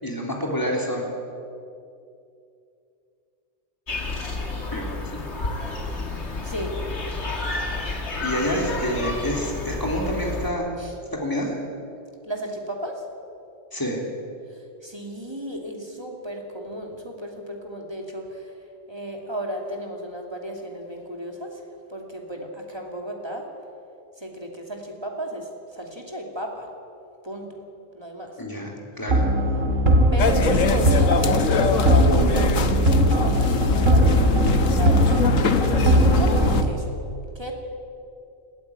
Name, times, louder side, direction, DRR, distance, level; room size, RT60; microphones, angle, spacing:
voice 1, 0.0-1.1 4.7-4.9 8.2-10.8 11.2-11.5 13.7-14.0 28.4-29.3, equal, 15° left, -1 dB, 3.6 m, -27 dB
sound 1, 3.9-10.5, left 3 dB, 60° left, 2.4 m, -30 dB
voice 2, 6.4-6.8 10.8-10.9 12.2-13.0 14.5-18.6 18.9-21.6 21.9-23.5 24.2-26.7 27.2-27.6 27.9-28.4 30.1-37.0 37.3-37.5, equal, 20° right, 1 dB, 2.7 m, -34 dB
sound 2, 29.1-36.7, right 1 dB, 80° right, 2.3 m, -20 dB
sound 3, 30.2-36.6, left 5 dB, 85° left, 1.5 m, -23 dB
19.5 x 14.5 x 10.0 m, 2.5 s
omnidirectional pair, 1.3 m